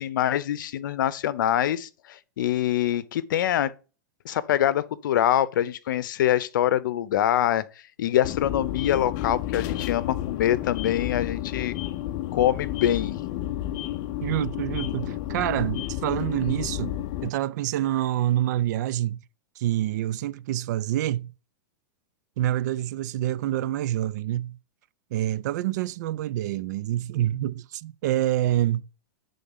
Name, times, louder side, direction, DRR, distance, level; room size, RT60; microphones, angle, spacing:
voice 1, 0.0-3.7 4.2-7.6 8.0-11.7 12.3-13.2, left 11 dB, 75° left, 0.7 m, -24 dB
sound 1, 8.2-17.3, left 13 dB, 40° left, 0.6 m, -31 dB
voice 2, 14.2-19.2 19.6-21.3 22.4-24.6 25.1-28.8, right 13 dB, 60° right, 0.4 m, -27 dB
8.5 x 3.8 x 5.4 m
supercardioid pair, 145°, 11 cm